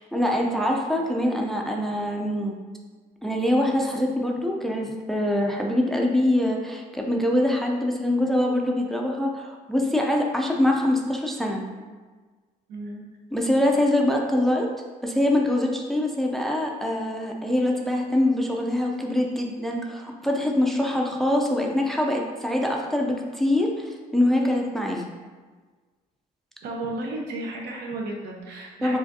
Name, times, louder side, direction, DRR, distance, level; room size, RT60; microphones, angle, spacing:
voice 1, 0.0-2.5 3.2-11.6 13.3-14.7 15.0-25.0 28.8-29.0, left 1 dB, ahead, 0 dB, 0.4 m, -24 dB
voice 2, 12.7-13.0 26.6-29.0, right 2 dB, 75° right, 0 dB, 0.8 m, -33 dB
4.8 x 2.5 x 2.6 m, 1.4 s
cardioid pair, 110°, 17 cm